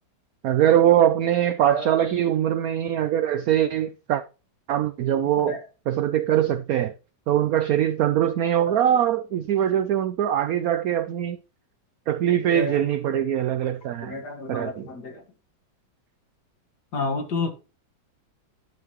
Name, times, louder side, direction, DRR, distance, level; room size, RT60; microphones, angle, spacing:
voice 1, 0.4-4.2 4.7-5.6 5.9-6.9 7.3-11.4 12.1-14.1 14.5-14.9, right 11 dB, 85° right, 0.8 m, -22 dB
voice 2, 1.6-1.9 5.1-5.6 8.6-8.8 12.5-12.8 14.0-15.2 16.9-17.5, left 3 dB, 55° left, 2.2 m, -31 dB
11.0 x 5.8 x 3.0 m
omnidirectional pair, 2.1 m